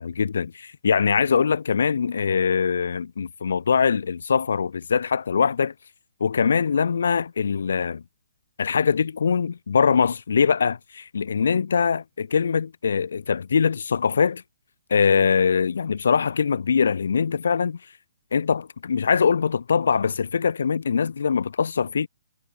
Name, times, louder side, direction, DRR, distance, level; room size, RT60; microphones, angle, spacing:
voice 1, 0.0-5.7 6.2-8.0 8.6-14.4 14.9-17.8 18.3-22.1, left 6 dB, 75° left, 0.4 m, -22 dB
hypercardioid pair, 155°, 0 cm